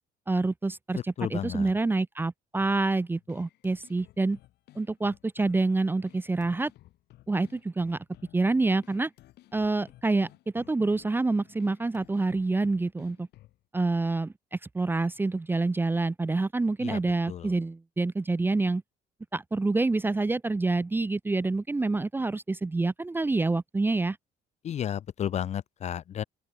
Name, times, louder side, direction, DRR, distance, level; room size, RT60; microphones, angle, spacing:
voice 1, 0.3-4.4 4.8-6.7 7.3-8.0 8.3-9.1 9.5-10.3 10.5-13.3 13.7-18.8 19.3-24.2, right 3 dB, 10° right, 0.5 m, -27 dB
voice 2, 0.9-1.7 16.8-17.0 17.3-17.5 24.6-26.2, left 10 dB, 40° left, 0.5 m, -33 dB
sound 1, 2.6-13.6, left 16 dB, 75° left, 3.7 m, -56 dB
open air
cardioid pair, 110°, 17 cm